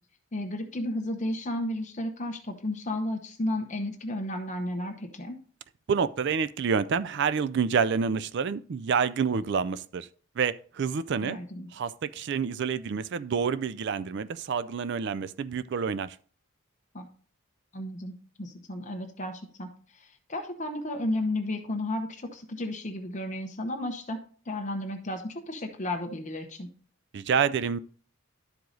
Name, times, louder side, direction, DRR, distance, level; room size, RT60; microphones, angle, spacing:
voice 1, 0.3-5.4 11.2-11.7 16.9-17.1 17.7-24.2 24.5-26.7, left 1 dB, 35° left, 0.9 m, -33 dB
voice 2, 5.9-10.1 10.4-11.4 11.7-16.2 27.1-27.8, right 6 dB, 50° right, 0.3 m, -28 dB
11.5 x 4.8 x 3.9 m
head